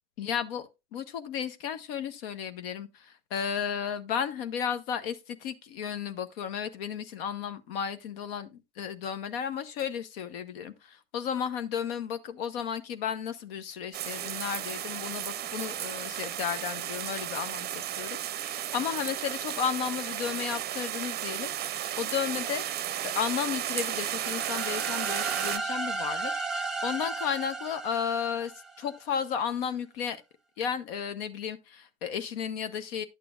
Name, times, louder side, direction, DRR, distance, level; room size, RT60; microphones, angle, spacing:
voice 1, 0.2-28.5 28.8-30.2 30.6-33.0, left 8 dB, 75° left, 0.9 m, -34 dB
sound 1, 13.9-25.6, right 11 dB, 35° right, 0.5 m, -34 dB
sound 2, 24.1-29.0, right 3 dB, ahead, 0.9 m, -35 dB
10.5 x 6.8 x 2.4 m
hypercardioid pair, 90°, 30 cm